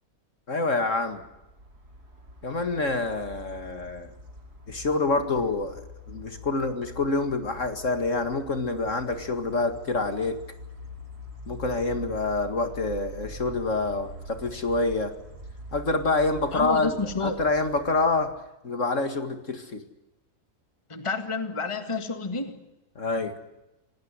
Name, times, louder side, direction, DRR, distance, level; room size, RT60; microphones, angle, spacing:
voice 1, 0.5-1.2 2.4-4.1 4.7-5.8 6.1-10.4 11.5-15.1 15.7-18.3 18.6-19.8 23.0-23.3, left 3 dB, 50° left, 8 dB, 2.3 m, -27 dB
sound 1, 0.9-18.5, equal, 75° right, 6.1 m, -44 dB
voice 2, 16.5-17.4 20.9-22.7, left 3 dB, 20° left, 8 dB, 1.9 m, -30 dB
27.0 x 18.5 x 9.8 m, 0.96 s
omnidirectional pair, 1.7 m